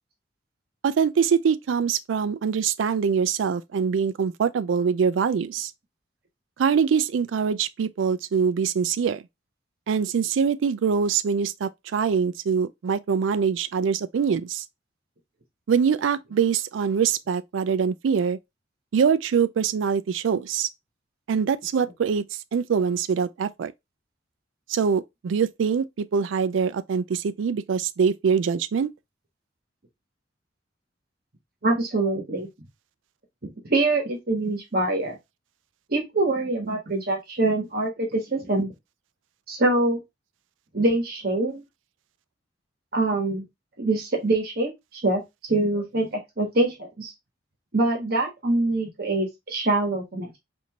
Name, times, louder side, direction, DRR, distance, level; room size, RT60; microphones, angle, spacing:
voice 1, 0.8-5.7 6.6-9.2 9.9-14.6 15.7-18.4 18.9-20.7 21.3-22.2 22.5-23.7 24.7-25.8 26.1-28.9, right 6 dB, 85° right, 0.4 m, -23 dB
voice 2, 31.6-32.5 33.4-35.2 35.9-38.7 39.5-40.0 40.7-41.6 42.9-43.5 43.8-45.2 45.5-47.1 47.7-50.4, right 2 dB, 55° right, 1.2 m, -24 dB
4.3 x 2.6 x 2.8 m
head